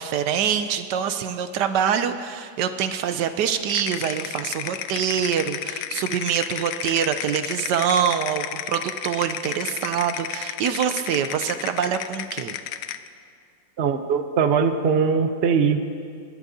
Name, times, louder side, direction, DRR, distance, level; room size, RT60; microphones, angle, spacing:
voice 1, 0.0-12.6, right 8 dB, 75° right, 9 dB, 1.1 m, -25 dB
sound 1, 3.7-13.1, left 11 dB, 80° left, 1.3 m, -32 dB
voice 2, 13.8-15.9, right 6 dB, 55° right, 7 dB, 0.7 m, -21 dB
28.0 x 11.5 x 2.8 m, 2.2 s
omnidirectional pair, 2.0 m